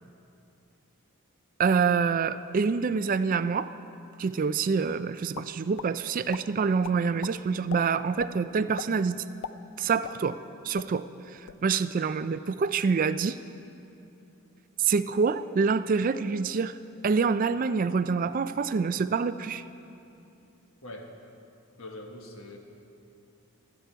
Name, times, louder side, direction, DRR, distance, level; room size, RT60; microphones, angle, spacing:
voice 1, 1.6-3.7 4.2-9.2 9.8-10.4 10.6-11.1 11.6-13.4 14.8-16.7 17.0-19.6, right 5 dB, 40° right, 13 dB, 0.3 m, -26 dB
sound 1, 5.3-5.9 6.3-6.4 6.8-7.3 7.7-7.8 8.2-8.3 8.8-8.9 9.3-10.5 10.7-10.9 11.3-11.6, left 7 dB, 90° left, 0.4 m, -39 dB
voice 2, 21.8-22.6, left 1 dB, 70° left, 2 dB, 1.5 m, -42 dB
23.0 x 8.2 x 4.6 m, 2.7 s
head